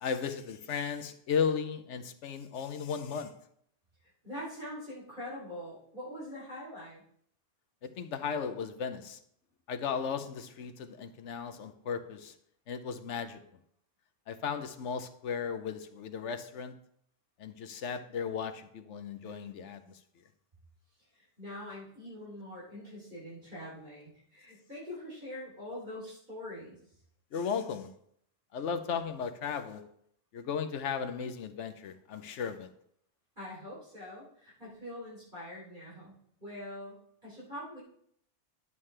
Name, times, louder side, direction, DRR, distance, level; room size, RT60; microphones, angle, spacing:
voice 1, 0.0-3.3 7.8-9.2 9.7-12.3 12.7-13.4 14.3-16.7 17.4-19.8 27.3-27.9 28.5-29.8 30.3-32.7, left 6 dB, 70° left, 9 dB, 1.0 m, -35 dB
voice 2, 4.2-7.0 21.1-26.8 33.3-36.1 36.4-37.8, left 1 dB, 40° right, -7 dB, 3.4 m, -44 dB
11.0 x 7.4 x 3.3 m, 0.69 s
omnidirectional pair, 1.3 m